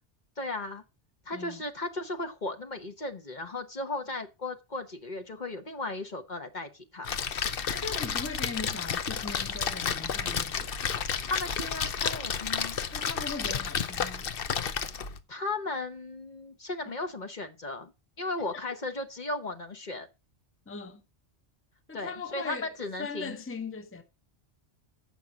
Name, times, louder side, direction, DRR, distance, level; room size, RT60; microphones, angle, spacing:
voice 1, 0.4-0.8 1.3-7.1 11.2-12.8 15.3-17.9 18.2-20.1 21.9-23.4, left 2 dB, 45° left, 1.3 m, -36 dB
voice 2, 1.3-1.6 7.7-11.0 12.9-14.3 16.9-17.0 18.6-18.8 20.7-21.0 21.9-22.7 23.0-24.0, left 4 dB, 15° left, 0.9 m, -39 dB
Splash splatter, 7.0-15.2, left 7 dB, 60° left, 0.9 m, -31 dB
7.7 x 5.7 x 7.1 m
omnidirectional pair, 1.1 m